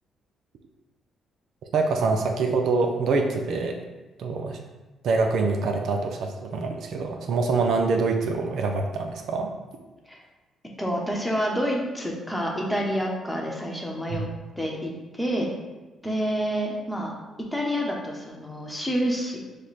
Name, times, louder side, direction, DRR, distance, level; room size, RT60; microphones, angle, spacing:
voice 1, 1.7-3.8 4.2-4.6 5.0-9.5 14.1-14.3, right 3 dB, 70° right, 3 dB, 0.5 m, -25 dB
voice 2, 10.8-14.3 14.6-15.5 16.0-17.1 17.5-19.4, equal, 5° left, -1 dB, 0.9 m, -28 dB
4.9 x 2.2 x 4.1 m, 1.2 s
cardioid pair, 90°, 0 cm